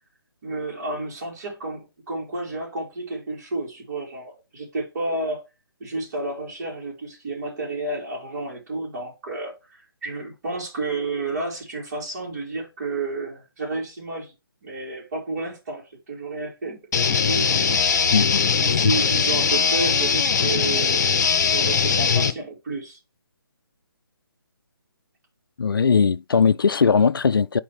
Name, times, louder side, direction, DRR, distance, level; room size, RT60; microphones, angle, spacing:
voice 1, 0.4-5.4 5.8-9.6 10.0-14.3 14.6-16.8 17.1-18.1 18.6-21.2 21.5-23.0, right 2 dB, 45° right, 3.7 m, -31 dB
sound 1, 16.9-22.3, left 6 dB, 50° left, 0.8 m, -20 dB
voice 2, 25.6-27.6, left 5 dB, 70° left, 0.4 m, -19 dB
8.5 x 4.5 x 3.4 m
figure-of-eight pair, 145°, 12 cm